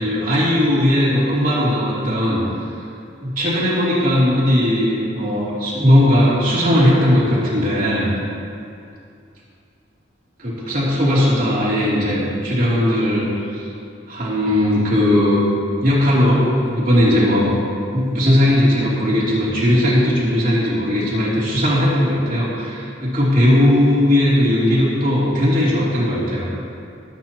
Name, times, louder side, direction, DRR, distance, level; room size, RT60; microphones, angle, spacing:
voice 1, 0.0-2.4 3.2-8.1 10.4-13.7 14.1-15.4 15.8-17.6 17.9-26.5, left 1 dB, 45° right, -7 dB, 3.1 m, -17 dB
20.0 x 9.3 x 3.0 m, 2.5 s
head